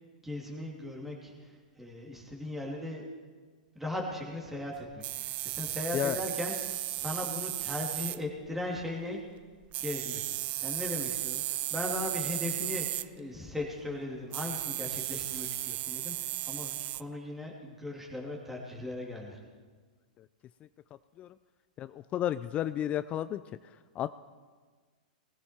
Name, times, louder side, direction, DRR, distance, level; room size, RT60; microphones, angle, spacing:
voice 1, 0.2-3.0 3.7-6.6 6.9-9.2 9.8-19.4, left 1 dB, 5° right, -2 dB, 2.7 m, -38 dB
sound 1, 5.0-8.2 9.7-13.1 14.3-17.0, right 17 dB, 35° right, 0.4 m, -35 dB
voice 2, 21.8-23.4 24.0-24.1, left 11 dB, 30° left, 14 dB, 0.4 m, -32 dB
20.0 x 15.0 x 4.4 m, 1.5 s
hypercardioid pair, 120°, 4 cm